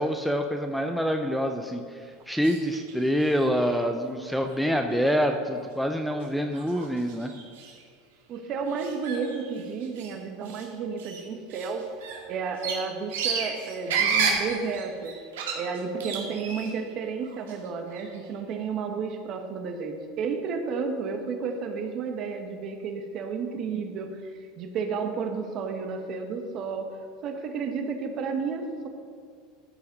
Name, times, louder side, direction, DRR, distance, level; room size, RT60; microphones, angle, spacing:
voice 1, 0.0-7.3, equal, ahead, 5 dB, 0.5 m, -26 dB
sound 1, 2.4-2.9 3.2-3.8 4.5-4.6 4.9-5.1 5.6-5.7 6.2-6.3 6.5-7.8 8.7-10.1 10.4-10.7 11.0-16.9 17.2-18.2, right 5 dB, 90° right, 2.0 m, -32 dB
voice 2, 8.3-11.9 12.3-15.1 15.5-26.9 27.2-28.9, right 5 dB, 40° right, 5 dB, 1.2 m, -32 dB
13.0 x 5.8 x 5.3 m, 2.1 s
supercardioid pair, 135°, 0 cm